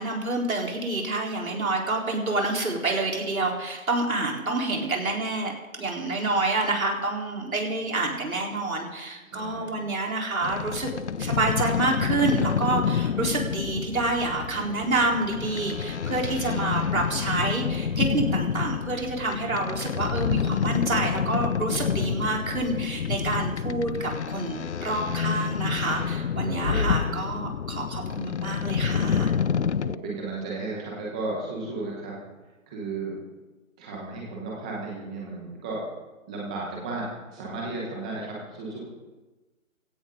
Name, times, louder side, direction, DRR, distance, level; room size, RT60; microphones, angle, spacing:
voice 1, 0.0-5.5 5.8-10.9 11.2-29.3, right 2 dB, 80° right, 0 dB, 4.2 m, -28 dB
voice 2, 9.3-9.7 26.4-27.1 29.8-32.2 32.7-33.2 33.8-35.8 36.3-38.8, right 3 dB, 5° right, -3 dB, 0.9 m, -34 dB
sound 1, 10.4-30.0, left 7 dB, 55° left, 0.5 m, -28 dB
18.0 x 16.5 x 3.9 m, 1.1 s
hypercardioid pair, 170°, 41 cm